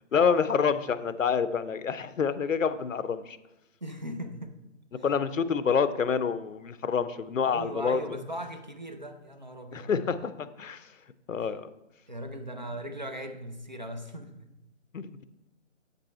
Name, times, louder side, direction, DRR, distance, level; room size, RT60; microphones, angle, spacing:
voice 1, 0.1-3.4 5.0-8.0 9.7-10.8 11.3-11.7 14.9-15.1, left 6 dB, 85° left, 13 dB, 0.7 m, -27 dB
voice 2, 3.8-4.6 5.0-5.1 7.4-10.2 11.4-11.5 12.1-14.5, right 1 dB, 35° right, 6 dB, 0.6 m, -39 dB
8.3 x 5.4 x 4.3 m, 0.93 s
hypercardioid pair, 175°, 38 cm